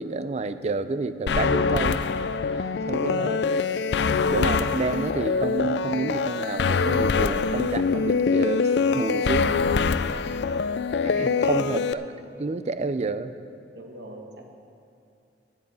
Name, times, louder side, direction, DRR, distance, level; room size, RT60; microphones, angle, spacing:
voice 1, 0.0-2.1 2.6-3.4 4.3-9.6 11.0-12.0 12.4-13.4, right 3 dB, 40° right, 12 dB, 0.4 m, -29 dB
sound 1, 1.3-11.9, left 5 dB, 70° left, 0.4 m, -24 dB
voice 2, 2.7-3.5 4.0-4.3 11.2-11.8 13.7-14.5, right 1 dB, 65° right, 2 dB, 1.4 m, -41 dB
10.0 x 8.8 x 8.0 m, 2.5 s
head